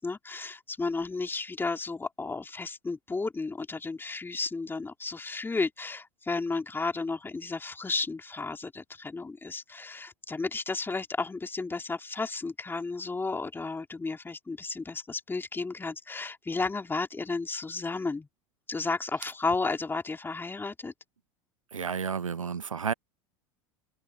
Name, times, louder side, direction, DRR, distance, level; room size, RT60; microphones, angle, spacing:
voice 1, 0.0-18.3 18.7-20.9, left 3 dB, 15° left, 3.6 m, -33 dB
voice 2, 21.7-22.9, right 6 dB, 80° right, 0.7 m, -31 dB
figure-of-eight pair, 80°, 17 cm